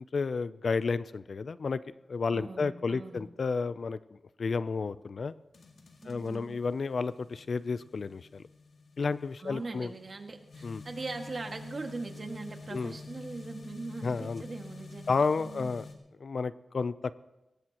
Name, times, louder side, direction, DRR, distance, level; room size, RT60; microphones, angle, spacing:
voice 1, 0.1-1.8 2.1-5.3 6.1-8.4 9.0-9.9 10.6-10.8 12.7-12.9 14.0-14.4 15.1-15.9 16.2-17.2, left 4 dB, 65° left, 15 dB, 0.5 m, -31 dB
voice 2, 2.3-3.2 6.0-6.6 9.4-15.8, right 3 dB, 50° right, 3 dB, 1.9 m, -41 dB
sound 1, 5.5-15.9, left 4 dB, 80° left, 2.0 m, -49 dB
21.5 x 18.5 x 3.0 m, 1.0 s
wide cardioid pair, 75°, 0 cm